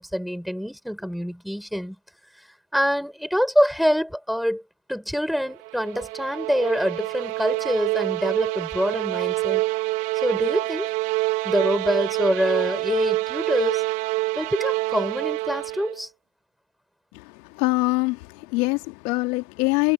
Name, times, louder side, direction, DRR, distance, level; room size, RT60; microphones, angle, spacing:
voice 1, 0.0-2.0 2.7-4.6 4.9-9.6 10.2-10.9 11.4-13.8 14.4-16.1, equal, ahead, 5.9 m, -25 dB
sound 1, 5.5-16.0, right 22 dB, 85° right, 1.5 m, -26 dB
voice 2, 17.1-19.9, left 24 dB, 85° left, 2.3 m, -24 dB
supercardioid pair, 90°, 45 cm